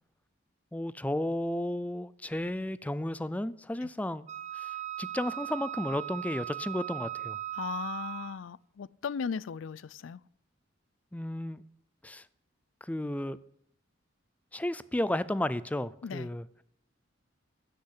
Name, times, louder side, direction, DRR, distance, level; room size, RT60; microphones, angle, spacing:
voice 1, 0.7-4.2 4.6-4.7 5.0-7.4 11.1-11.6 12.0-12.2 12.8-13.4 14.5-16.5, left 1 dB, 10° left, 0.4 m, -33 dB
Wind instrument woodwind instrument, 4.3-8.5, right 13 dB, 35° right, 0.8 m, -38 dB
voice 2, 7.5-10.2 16.0-16.3, left 6 dB, 80° left, 0.4 m, -37 dB
15.5 x 6.6 x 8.2 m
head